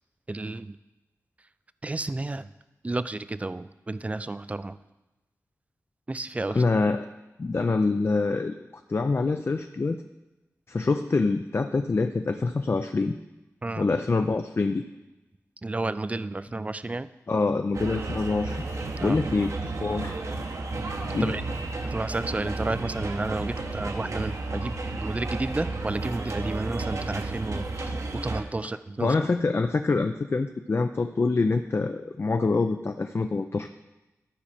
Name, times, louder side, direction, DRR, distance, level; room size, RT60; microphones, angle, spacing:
voice 1, 0.3-0.8 1.8-2.5 2.8-4.8 6.1-6.6 13.6-13.9 15.6-17.1 19.0-19.2 21.2-21.4 21.9-29.1, right 2 dB, 25° right, 14 dB, 0.3 m, -31 dB
voice 2, 6.5-7.1 7.4-8.5 8.9-10.0 10.7-13.1 13.8-14.8 17.3-18.7 19.0-20.2 21.1-21.4 29.0-33.7, left 3 dB, 45° left, 6 dB, 0.4 m, -25 dB
sound 1, 17.7-28.4, right 3 dB, 60° right, 0.9 m, -32 dB
12.5 x 4.8 x 4.2 m, 1.0 s
cardioid pair, 60°, 6 cm